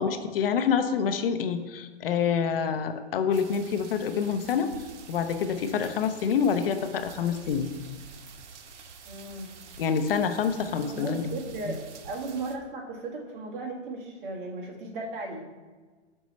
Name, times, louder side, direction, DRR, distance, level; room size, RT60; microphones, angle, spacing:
voice 1, 0.0-4.7 5.1-7.7 9.8-11.4 11.7-11.8, left 7 dB, 55° left, 9 dB, 0.6 m, -27 dB
sound 1, 3.3-12.6, right 5 dB, 85° right, 0.9 m, -47 dB
voice 2, 9.0-9.5 10.8-11.8 12.0-15.4, right 2 dB, 50° right, 0 dB, 1.4 m, -36 dB
6.9 x 5.3 x 3.1 m, 1.4 s
hypercardioid pair, 155°, 35 cm